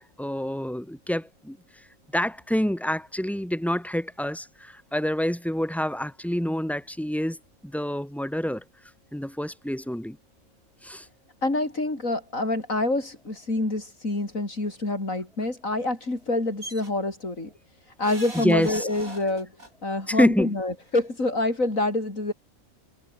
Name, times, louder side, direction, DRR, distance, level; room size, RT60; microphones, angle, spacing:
voice 1, 0.0-1.6 2.1-7.4 7.6-8.6 9.1-10.2 10.8-11.0 18.3-18.9 20.1-20.6, equal, ahead, 6.2 m, -27 dB
voice 2, 11.4-17.5 18.0-19.5 19.8-22.3, left 2 dB, 65° left, 5.7 m, -27 dB
sound 1, 16.6-16.9 18.0-19.7 20.9-21.0 21.3-21.4, right 2 dB, 80° right, 7.5 m, -41 dB
omnidirectional pair, 1.5 m